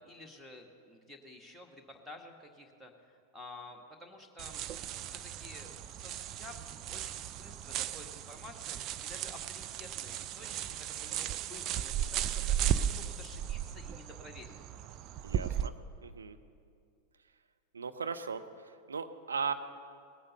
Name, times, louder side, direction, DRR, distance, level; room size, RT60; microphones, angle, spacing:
voice 1, 0.0-4.6 5.0-14.6, left 2 dB, ahead, 3 dB, 1.7 m, -52 dB
sound 1, 4.4-15.7, right 10 dB, 35° right, 0.4 m, -36 dB
voice 2, 15.2-15.7 16.0-16.4 17.7-19.5, right 5 dB, 75° right, 8 dB, 0.7 m, -37 dB
18.5 x 8.6 x 6.6 m, 2.3 s
figure-of-eight pair, 90°, 0 cm